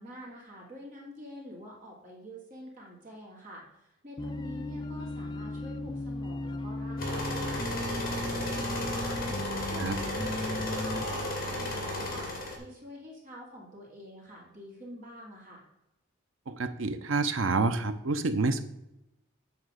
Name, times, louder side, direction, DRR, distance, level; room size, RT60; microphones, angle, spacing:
voice 1, 0.0-9.2 9.7-12.3 12.6-15.6, equal, 40° right, -3 dB, 2.6 m, -47 dB
sound 1, 4.2-11.0, left 1 dB, 20° left, 0.4 m, -36 dB
sound 2, 7.0-12.6, left 1 dB, 45° left, 2.3 m, -34 dB
voice 2, 16.5-18.6, right 3 dB, 80° right, 10 dB, 0.7 m, -28 dB
8.6 x 3.9 x 6.3 m, 0.90 s
head